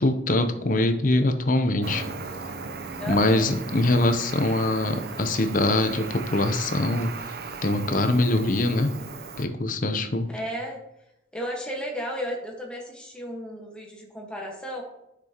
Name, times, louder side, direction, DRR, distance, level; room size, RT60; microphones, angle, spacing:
voice 1, 0.0-2.0 3.0-7.1 7.6-8.9 9.4-10.3, left 2 dB, 45° left, 8 dB, 0.7 m, -23 dB
Cricket, 1.8-9.4, right 4 dB, 55° right, 0.6 m, -37 dB
voice 2, 3.0-3.5 10.3-10.8 11.3-14.8, equal, 5° left, -1 dB, 1.4 m, -34 dB
10.5 x 6.1 x 2.9 m, 0.87 s
head